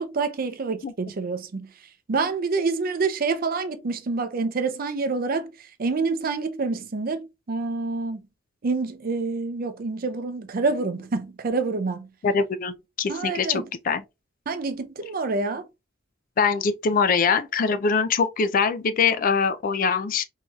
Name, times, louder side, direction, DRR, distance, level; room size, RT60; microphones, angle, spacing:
voice 1, 0.0-1.7 2.1-5.5 5.8-8.2 8.6-12.1 13.1-13.6 14.5-15.6, right 4 dB, 50° right, 0.5 m, -27 dB
voice 2, 12.2-14.0 16.4-20.2, left 5 dB, 45° left, 0.4 m, -23 dB
4.5 x 2.7 x 2.3 m
head